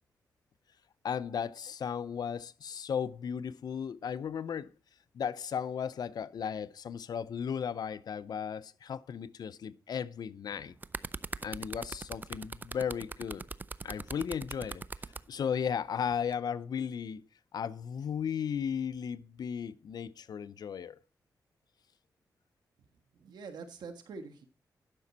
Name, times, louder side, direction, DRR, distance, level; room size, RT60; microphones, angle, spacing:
voice 1, 1.0-4.7 5.1-10.7 11.4-13.4 13.8-14.8 15.3-17.2 17.5-21.0, left 7 dB, 70° left, 0.6 m, -35 dB
sound 1, 10.5-15.2 16.1-16.3, right 3 dB, 25° right, 0.4 m, -40 dB
voice 2, 23.1-24.5, right 4 dB, 85° right, 1.5 m, -45 dB
12.0 x 6.1 x 4.1 m
cardioid pair, 75°, 7 cm